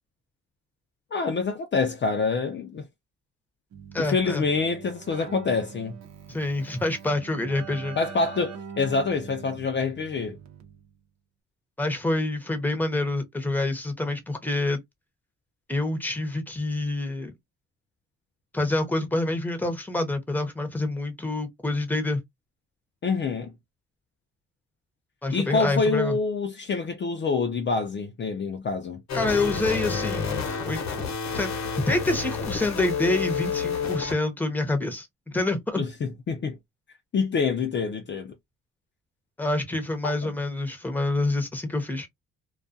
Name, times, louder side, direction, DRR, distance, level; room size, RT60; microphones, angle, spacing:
voice 1, 1.1-2.9 4.0-6.0 8.0-10.4 23.0-23.5 25.3-29.0 35.8-36.6 37.1-38.3 40.2-40.3, left 4 dB, 40° left, 0.5 m, -26 dB
Keyboard (musical), 3.7-11.0, right 7 dB, 65° right, 0.8 m, -43 dB
voice 2, 3.9-4.4 6.3-8.0 11.8-14.8 15.7-17.3 18.5-22.2 25.2-26.2 29.1-30.8 31.3-31.5 31.9-35.8 39.4-42.1, left 2 dB, 5° left, 0.8 m, -27 dB
sound 1, 29.1-34.1, left 5 dB, 60° left, 0.8 m, -29 dB
2.3 x 2.3 x 2.5 m
cardioid pair, 90°, 30 cm